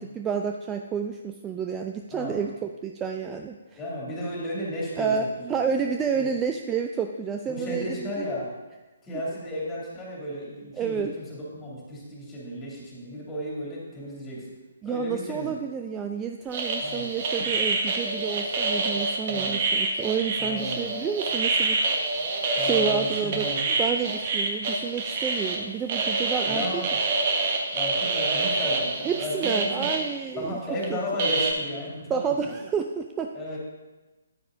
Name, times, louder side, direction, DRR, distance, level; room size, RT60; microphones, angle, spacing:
voice 1, 0.0-3.8 5.0-5.2 5.5-8.2 10.8-11.1 14.8-22.1 22.6-23.5 23.8-26.6 29.0-30.6 30.9-31.0 32.1-33.3, right 6 dB, 15° right, 4 dB, 0.3 m, -30 dB
voice 2, 2.1-2.4 3.8-5.7 6.2-6.3 7.5-8.5 9.0-14.4 14.8-15.5 16.8-17.1 19.3-19.6 20.4-20.9 22.5-23.7 26.5-27.0 27.7-29.9 30.3-32.5 33.3-33.6, equal, 15° left, -5 dB, 2.7 m, -34 dB
sound 1, 16.5-25.6 25.9-30.1 30.8-30.9 31.2-31.5, right 3 dB, 40° right, 1.2 m, -26 dB
9.5 x 9.4 x 2.7 m, 1.2 s
figure-of-eight pair, 135°, 0 cm